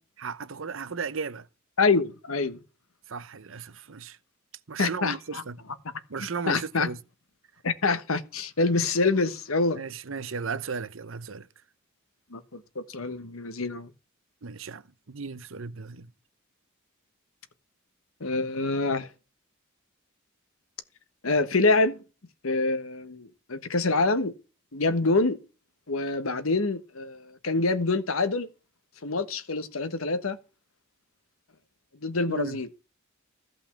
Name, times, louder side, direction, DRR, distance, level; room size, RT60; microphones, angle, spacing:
voice 1, 0.2-1.5 3.1-4.2 4.7-5.6 6.1-7.0 9.7-11.5 14.4-16.1 32.3-32.6, right 5 dB, 70° right, 0.8 m, -35 dB
voice 2, 1.8-2.6 4.8-5.4 6.5-6.9 7.6-9.8 12.3-13.9 18.2-19.1 21.2-22.0 22.4-24.3 24.7-25.4 25.9-28.5 29.0-30.4 32.0-32.7, left 3 dB, 85° left, 1.3 m, -26 dB
14.5 x 5.5 x 7.1 m
head